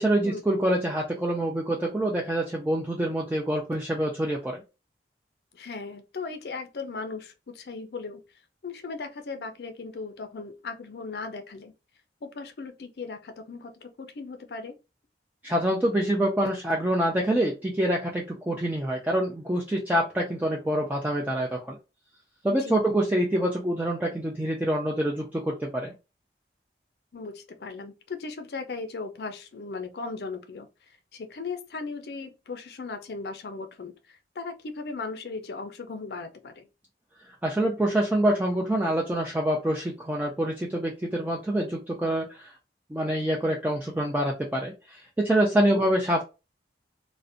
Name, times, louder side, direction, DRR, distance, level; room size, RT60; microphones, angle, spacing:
voice 1, 0.0-4.6 15.4-21.8 22.4-25.9 37.4-42.5 42.9-46.2, right 1 dB, 10° right, 0.3 m, -26 dB
voice 2, 5.5-8.2 8.6-11.7 12.2-14.8 22.5-22.8 27.1-36.7 45.7-45.9, left 4 dB, 60° left, 0.4 m, -37 dB
2.5 x 2.1 x 2.5 m
head